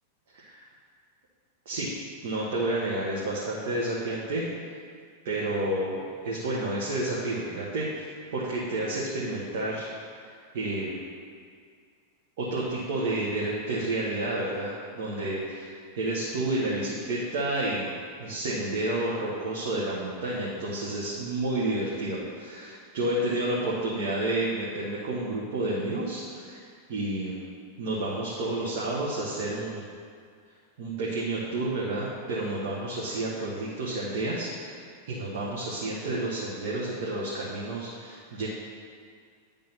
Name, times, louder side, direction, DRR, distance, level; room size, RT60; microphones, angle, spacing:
voice 1, 2.2-4.4 5.2-9.8 10.5-11.0 12.4-27.5 27.8-29.9 30.8-38.5, right 2 dB, 55° right, -6 dB, 1.3 m, -30 dB
10.5 x 3.6 x 5.7 m, 2.1 s
figure-of-eight pair, 90°, 0 cm